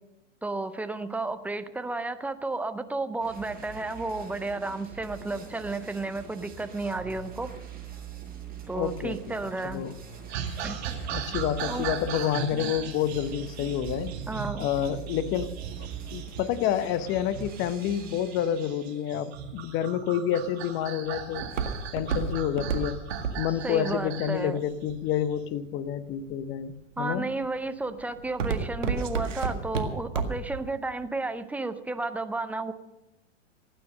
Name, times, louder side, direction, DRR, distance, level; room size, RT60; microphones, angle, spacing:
voice 1, 0.4-7.5 8.7-9.8 10.6-10.8 11.7-11.9 12.5-12.7 14.3-14.7 23.5-24.6 27.0-32.7, right 2 dB, 5° right, 10 dB, 0.5 m, -32 dB
sound 1, 3.2-19.2, right 8 dB, 25° right, 6.7 m, -43 dB
voice 2, 8.7-9.3 9.6-10.0 11.1-14.1 14.6-15.5 16.1-21.4 21.9-23.0 23.4-26.7 27.0-27.3, left 10 dB, 30° left, 15 dB, 0.9 m, -28 dB
sound 2, 10.3-25.4, right 7 dB, 55° right, 2.4 m, -38 dB
Walk footsteps, 20.3-25.4 26.0-26.5 27.0-27.3 27.7-30.6 30.9-31.0, right 6 dB, 75° right, 1.9 m, -30 dB
17.0 x 9.5 x 6.5 m, 1.0 s
hypercardioid pair, 105°, 37 cm